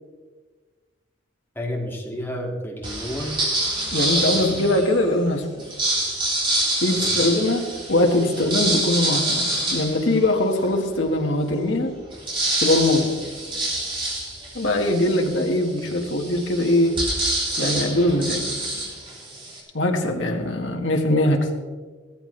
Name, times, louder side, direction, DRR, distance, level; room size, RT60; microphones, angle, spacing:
voice 1, 1.6-3.4 4.2-4.5 7.0-7.3 15.8-16.0, equal, 10° left, -2 dB, 2.4 m, -31 dB
sound 1, 2.8-5.0 5.6-10.8 11.3-11.4 11.6-19.6, right 1 dB, 25° right, 3.8 m, -26 dB
voice 2, 3.9-5.5 6.8-12.0 12.6-13.1 14.6-17.0 17.6-18.5 19.7-21.5, left 1 dB, 70° left, 2 dB, 1.9 m, -21 dB
17.0 x 13.5 x 3.4 m, 1.4 s
head